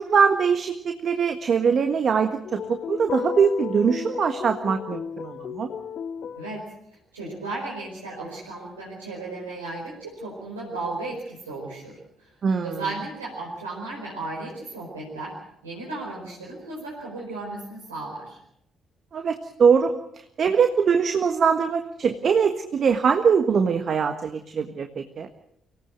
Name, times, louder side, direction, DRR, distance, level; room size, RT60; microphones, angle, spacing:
voice 1, 0.0-5.7 12.4-12.8 19.1-25.3, right 6 dB, 50° right, 7 dB, 1.5 m, -22 dB
sound 1, 2.4-6.6, left 7 dB, 55° left, 1.1 m, -33 dB
voice 2, 6.4-6.7 7.1-12.3 12.6-15.4 15.6-18.4, right 2 dB, 90° right, -6 dB, 5.0 m, -35 dB
24.5 x 18.0 x 8.0 m, 0.79 s
hypercardioid pair, 45°, 0 cm